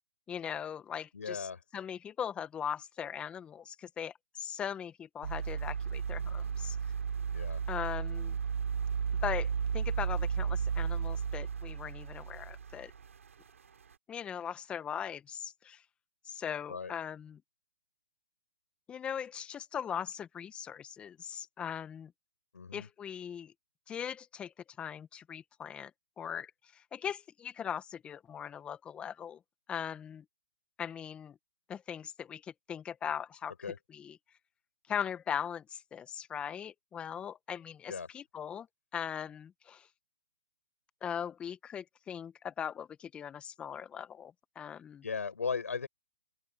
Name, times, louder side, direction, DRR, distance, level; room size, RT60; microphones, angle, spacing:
voice 1, 0.3-6.8 7.7-8.3 9.2-9.5 9.7-12.9 14.1-15.8 16.2-17.4 18.9-22.1 22.7-23.5 23.9-25.9 26.2-29.4 29.7-30.2 30.8-31.4 31.7-33.5 33.9-34.2 34.9-38.7 38.9-39.9 41.0-45.0, left 8 dB, 15° left, 1.4 m, -40 dB
voice 2, 1.1-1.6 7.3-7.6 16.7-16.9 22.5-22.9 33.6-33.8 37.9-38.1 45.0-45.9, left 5 dB, 80° left, 5.7 m, -37 dB
sound 1, 5.2-13.5 13.9-14.0, right 6 dB, 75° right, 5.0 m, -34 dB
open air
hypercardioid pair, 140°, 8 cm